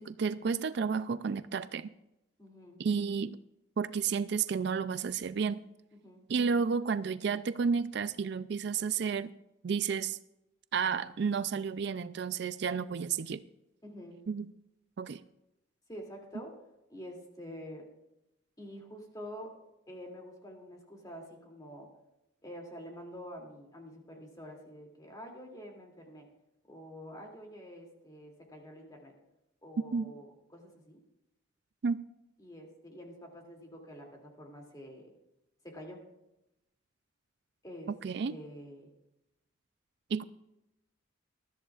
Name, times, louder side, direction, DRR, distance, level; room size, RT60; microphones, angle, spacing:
voice 1, 0.0-1.9 2.8-3.4 3.8-5.6 6.3-9.3 9.6-10.2 10.7-13.4 14.3-14.5 15.0-15.2 29.9-30.1 31.8-32.0 38.0-38.3 40.1-40.2, right 6 dB, 60° right, 13 dB, 0.4 m, -31 dB
voice 2, 2.4-2.8 6.0-6.3 13.8-14.2 15.9-16.6 16.9-17.8 18.6-19.5 19.9-21.9 22.4-26.3 26.7-29.1 29.6-31.0 32.4-35.1 35.6-36.0 37.6-37.9 38.3-38.9, equal, 20° left, 0 dB, 2.6 m, -47 dB
20.0 x 13.5 x 2.4 m, 0.89 s
head